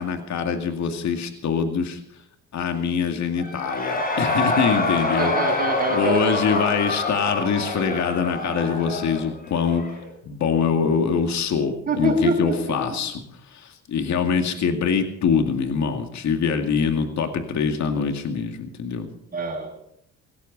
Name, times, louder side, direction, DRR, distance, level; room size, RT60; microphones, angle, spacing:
voice 1, 0.0-2.0 2.5-5.3 5.9-9.8 10.2-13.1 13.9-19.1, left 6 dB, 65° left, 5 dB, 2.3 m, -24 dB
Cheering / Crowd, 3.4-10.1, left 2 dB, 30° left, 4.8 m, -26 dB
voice 2, 5.2-6.8 11.9-12.8 19.3-19.7, right 2 dB, 30° right, -8 dB, 7.0 m, -25 dB
18.0 x 17.0 x 4.1 m, 0.74 s
cardioid pair, 90°, 30 cm